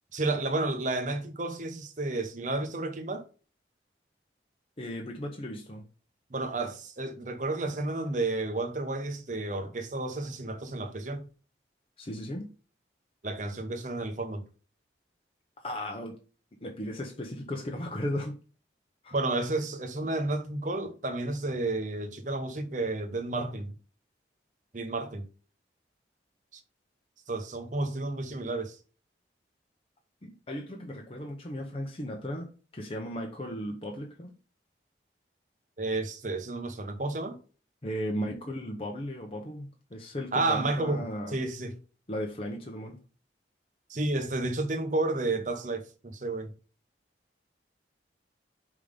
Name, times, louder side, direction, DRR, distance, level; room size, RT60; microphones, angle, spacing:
voice 1, 0.1-3.2 6.3-11.3 13.2-14.4 19.1-23.7 24.7-25.2 27.3-28.8 35.8-37.4 40.3-41.8 43.9-46.5, right 2 dB, 45° right, 0.8 m, -31 dB
voice 2, 4.8-5.8 12.0-12.5 15.6-16.2 16.6-18.4 19.0-19.2 30.2-34.3 37.8-41.4 42.1-43.0, equal, 30° left, 0.7 m, -36 dB
5.1 x 3.6 x 5.1 m
head